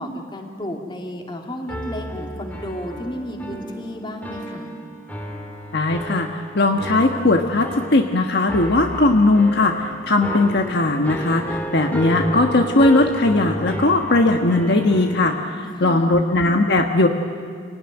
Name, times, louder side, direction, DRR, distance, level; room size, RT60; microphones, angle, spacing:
voice 1, 0.0-4.7 15.5-16.1, equal, 25° left, 2 dB, 2.8 m, -33 dB
sound 1, 1.7-15.4, equal, 10° left, 2.2 m, -32 dB
voice 2, 5.7-6.3 6.5-15.4 15.8-17.1, left 2 dB, 55° left, 3 dB, 1.3 m, -18 dB
27.5 x 18.0 x 10.0 m, 2.1 s
head